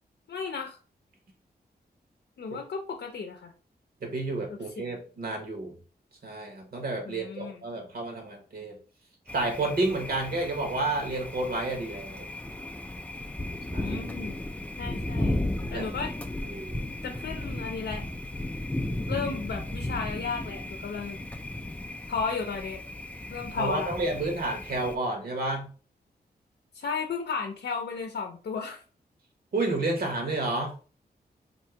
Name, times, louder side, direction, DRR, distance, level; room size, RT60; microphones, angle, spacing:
voice 1, 0.3-0.8 2.4-3.5 4.8-5.0 7.1-7.6 13.8-14.4 14.8-15.4 15.7-16.1 17.0-18.0 19.1-21.2 22.1-22.8 23.3-23.9 26.7-28.8, left 5 dB, 80° left, 4 dB, 0.6 m, -34 dB
voice 2, 4.0-5.7 6.2-8.8 9.3-12.3 13.7-14.0 15.7-15.9 16.5-16.8 23.5-25.7 29.5-30.7, right 2 dB, 65° right, 1 dB, 1.2 m, -30 dB
Thunder, 9.3-25.0, left 1 dB, 10° left, 0.3 m, -35 dB
2.8 x 2.7 x 4.4 m, 0.38 s
wide cardioid pair, 155°, 17 cm